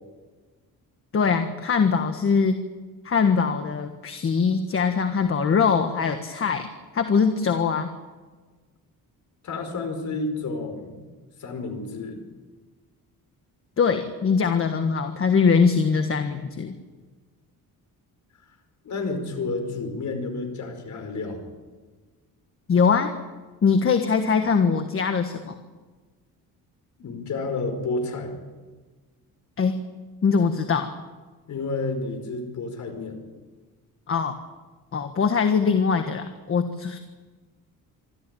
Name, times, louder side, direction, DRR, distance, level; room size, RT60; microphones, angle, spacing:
voice 1, 1.1-2.6 3.0-6.7 6.9-7.9 13.8-16.8 22.7-23.1 23.6-25.5 29.6-29.7 30.2-30.9 34.1-34.4 34.9-37.0, left 5 dB, 40° left, 7 dB, 1.5 m, -22 dB
voice 2, 9.4-11.0 11.4-12.2 18.8-21.4 27.0-28.3 31.5-33.2, left 3 dB, 55° left, 6 dB, 5.1 m, -30 dB
25.5 x 14.0 x 9.2 m, 1.3 s
cardioid pair, 140°, 35 cm